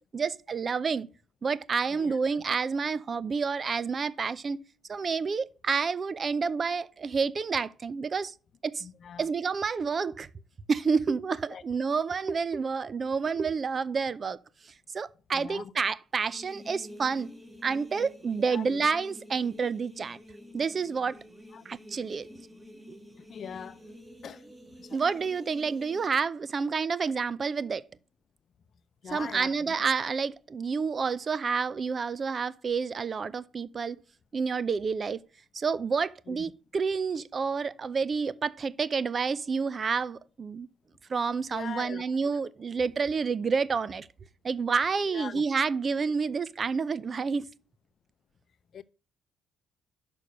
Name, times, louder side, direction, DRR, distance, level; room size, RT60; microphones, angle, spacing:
voice 1, 0.1-1.1 1.4-4.6 4.9-8.3 8.6-8.9 9.2-10.3 10.7-14.4 14.9-17.3 17.6-20.2 20.5-21.2 21.7-22.3 22.9-23.0 24.9-27.8 29.1-34.0 34.3-35.2 35.5-40.7 41.1-44.1 44.4-47.5, right 5 dB, 45° right, 0.5 m, -29 dB
voice 2, 1.9-2.4 8.8-9.3 11.5-11.6 15.3-15.7 18.5-18.9 21.5-21.6 23.2-23.8 24.2-24.4 24.8-25.0 29.0-29.7 36.3-36.5 41.5-42.4 45.0-45.5 48.7-48.8, left 7 dB, 55° left, 0.6 m, -42 dB
sound 1, 16.3-26.1, equal, 20° right, 2.6 m, -49 dB
6.5 x 5.3 x 6.4 m
supercardioid pair, 60°, 0 cm